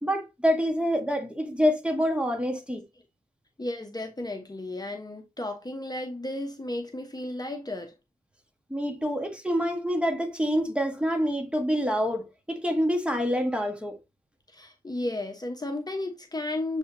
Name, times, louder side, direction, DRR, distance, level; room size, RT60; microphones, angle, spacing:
voice 1, 0.0-2.8 8.7-14.0, equal, 5° right, 1.5 m, -26 dB
voice 2, 3.6-7.9 9.0-9.1 14.5-16.8, left 1 dB, 25° left, 1.2 m, -33 dB
7.1 x 4.8 x 2.8 m
wide cardioid pair, 100°, 15 cm